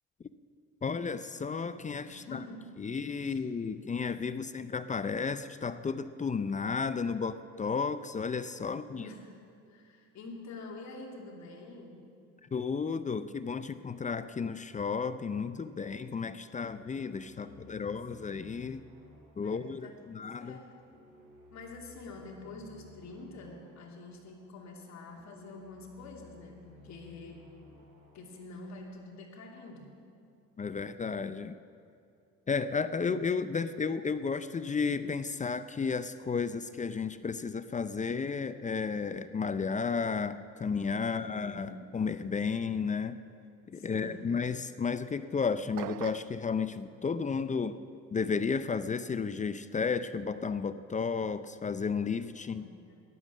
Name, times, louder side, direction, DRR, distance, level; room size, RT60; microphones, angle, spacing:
voice 1, 0.8-2.4 2.8-9.1 12.5-18.8 19.4-20.6 30.6-31.6 32.5-43.2 43.7-47.8 48.1-52.6, left 5 dB, 25° left, 13 dB, 0.5 m, -33 dB
voice 2, 2.0-2.8 3.2-3.4 8.6-9.3 9.7-12.1 17.4-18.0 19.4-20.7 21.5-27.5 28.1-29.9 41.0-41.9 43.7-44.3 52.5-53.0, left 3 dB, 55° left, 1 dB, 2.8 m, -47 dB
sound 1, 16.5-29.6, left 2 dB, 90° right, 2.9 m, -58 dB
sound 2, 45.8-46.4, right 15 dB, 70° right, 0.5 m, -40 dB
13.5 x 11.0 x 7.4 m, 2.5 s
supercardioid pair, 90°, 32 cm